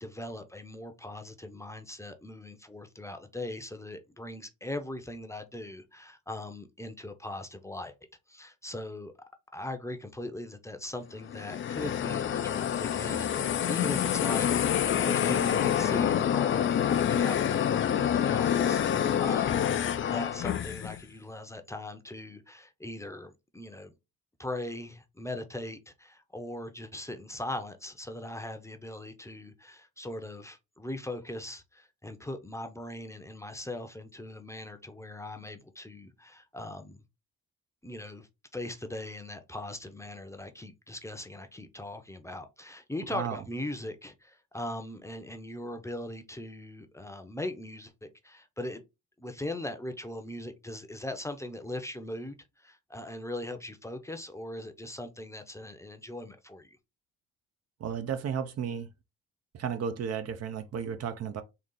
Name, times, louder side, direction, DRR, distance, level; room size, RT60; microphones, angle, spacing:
voice 1, 0.0-7.9 8.3-9.1 9.5-19.7 20.1-23.9 24.4-37.0 37.8-48.8 49.2-56.8, left 1 dB, 10° left, 0.7 m, -40 dB
sound 1, 11.2-21.0, left 9 dB, 40° left, 0.4 m, -27 dB
voice 2, 57.8-58.9 59.5-61.4, right 7 dB, 55° right, 0.6 m, -33 dB
3.9 x 2.4 x 3.8 m
cardioid pair, 90°, 30 cm